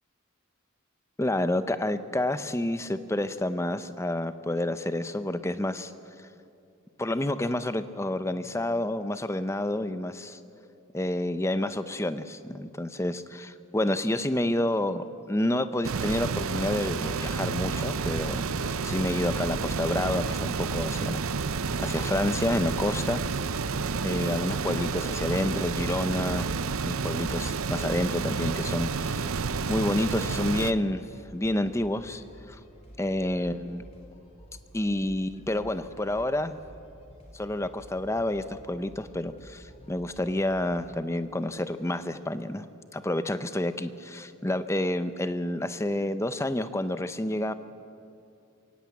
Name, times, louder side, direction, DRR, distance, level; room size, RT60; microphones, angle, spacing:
voice 1, 1.2-5.9 7.0-10.4 10.9-21.2 21.8-23.2 24.0-26.6 26.8-29.3 29.7-31.1 31.3-32.6 33.0-33.8 34.7-36.6 37.3-42.7 42.9-47.5, left 1 dB, 15° left, 11 dB, 0.6 m, -29 dB
sound 1, 15.8-30.7, right 4 dB, 75° right, 0.7 m, -30 dB
sound 2, 24.5-41.0, equal, 30° left, 3.7 m, -51 dB
22.5 x 18.0 x 8.4 m, 2.6 s
head